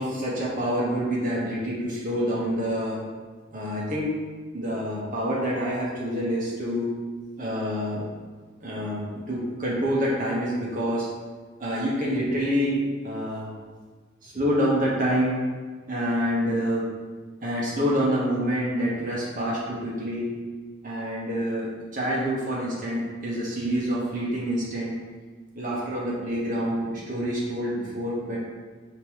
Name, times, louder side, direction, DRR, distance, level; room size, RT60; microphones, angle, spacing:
voice 1, 0.0-3.0 3.5-4.1 4.5-6.9 7.4-8.0 8.6-11.1 11.6-13.5 14.2-15.4 15.9-16.9 17.4-20.3 20.8-24.9 25.5-28.4, equal, 40° right, -5 dB, 1.1 m, -27 dB
5.3 x 2.9 x 3.0 m, 1.4 s
head